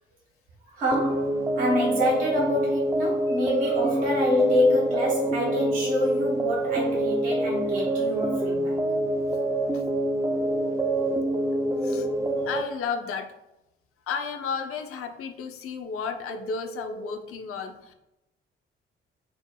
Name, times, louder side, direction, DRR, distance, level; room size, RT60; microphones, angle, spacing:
voice 1, 0.7-8.8, left 1 dB, 70° right, -3 dB, 1.0 m, -26 dB
sound 1, 0.9-12.6, right 1 dB, 10° right, 0.5 m, -26 dB
sound 2, 10.3-12.3 16.3-17.2, right 5 dB, 90° right, 1.3 m, -40 dB
voice 2, 12.5-13.3 14.1-17.9, left 6 dB, 50° left, 6 dB, 0.6 m, -33 dB
4.4 x 2.0 x 3.7 m, 0.91 s
figure-of-eight pair, 40°, 29 cm